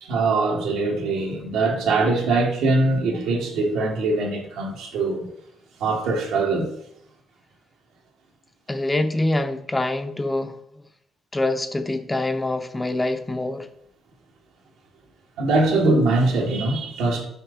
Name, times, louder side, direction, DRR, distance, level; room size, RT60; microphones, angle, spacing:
voice 1, 0.0-5.3 5.8-6.7 15.4-17.2, right 3 dB, 90° right, 1.4 m, -22 dB
voice 2, 8.7-10.6 11.3-13.7, left 2 dB, 15° left, 0.6 m, -25 dB
5.7 x 4.9 x 3.6 m
cardioid pair, 90°, 0 cm